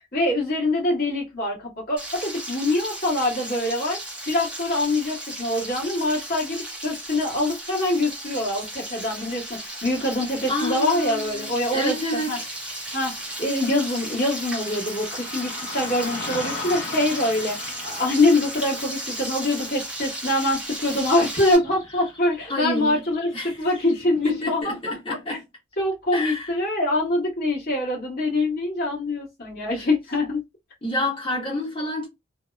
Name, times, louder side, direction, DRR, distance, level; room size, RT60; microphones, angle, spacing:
voice 1, 0.1-4.0 4.3-12.4 12.9-23.3 23.6-25.4 25.8-30.4, left 1 dB, 50° left, 1.3 m, -24 dB
Frying (food), 2.0-21.6, right 1 dB, 5° right, 0.7 m, -35 dB
Car passing by / Traffic noise roadway noise, 10.1-24.4, left 3 dB, 65° left, 1.0 m, -41 dB
voice 2, 10.5-12.5 22.4-23.1 23.3-23.7 24.2-25.4 26.1-26.5 29.7-29.9 30.8-32.1, left 1 dB, 25° left, 1.0 m, -29 dB
2.8 x 2.0 x 2.3 m
head